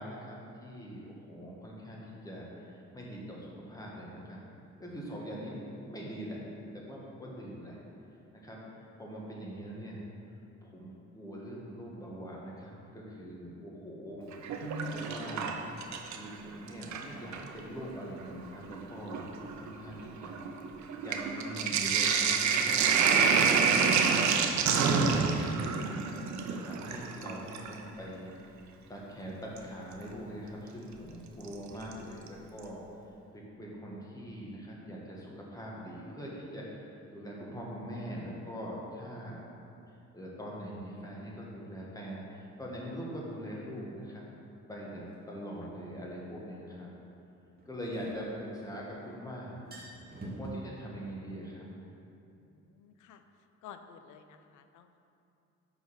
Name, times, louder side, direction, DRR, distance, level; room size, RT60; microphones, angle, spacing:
voice 1, 0.0-4.4 4.8-7.8 8.3-8.6 9.0-10.0 10.6-14.3 14.6-15.6 16.1-20.4 21.0-24.3 24.6-26.1 26.5-28.3 28.9-32.8 33.3-36.7 37.1-39.4 40.1-44.2 44.7-46.9 47.6-49.6 50.2-51.7, equal, 10° left, -4 dB, 1.6 m, -42 dB
Sink (filling or washing), 14.3-16.3 16.7-17.5 18.3-18.4 18.7-27.8 29.6-29.7 31.5-31.9 32.3-32.4 32.6-32.7, right 5 dB, 65° right, 0.6 m, -28 dB
sound 1, 45.1-45.2 47.6-48.9 49.2-49.3 49.5-50.5, right 1 dB, 30° right, 1.4 m, -45 dB
voice 2, 52.4-53.2 53.6-55.0, left 8 dB, 80° left, 8 dB, 0.5 m, -52 dB
5.2 x 4.9 x 6.3 m, 2.7 s
cardioid pair, 90°, 30 cm